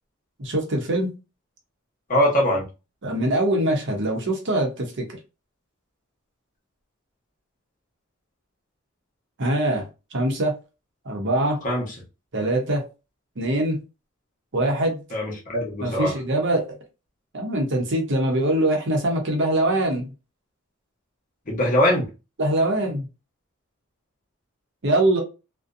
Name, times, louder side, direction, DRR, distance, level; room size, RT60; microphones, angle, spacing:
voice 1, 0.4-1.1 3.0-5.0 9.4-9.9 10.1-10.5 11.1-11.6 12.3-12.8 13.4-13.8 14.5-15.0 15.8-16.6 17.3-20.1 22.4-23.1 24.8-25.2, right 1 dB, 60° right, 2 dB, 0.8 m, -23 dB
voice 2, 2.1-2.6 11.6-11.9 15.1-16.1 21.5-22.1, equal, 40° left, -2 dB, 0.9 m, -22 dB
2.5 x 2.2 x 2.5 m, 0.29 s
head